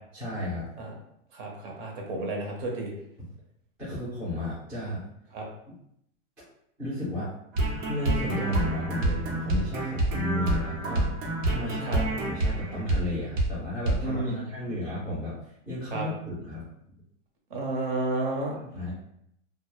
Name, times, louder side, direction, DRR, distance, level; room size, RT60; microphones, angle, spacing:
voice 1, 0.1-0.7 3.8-5.0 6.8-7.3 7.6-16.7 18.6-18.9, left 1 dB, 5° right, -12 dB, 0.4 m, -33 dB
voice 2, 1.3-2.9 5.3-5.4 11.9-12.0 14.0-14.4 15.9-16.1 17.5-18.5, right 2 dB, 45° right, 0 dB, 0.7 m, -31 dB
sound 1, 7.5-13.1 13.4-13.5 13.9-14.0, right 2 dB, 80° right, 0.9 m, -27 dB
2.1 x 2.0 x 2.8 m, 0.73 s
supercardioid pair, 155°, 38 cm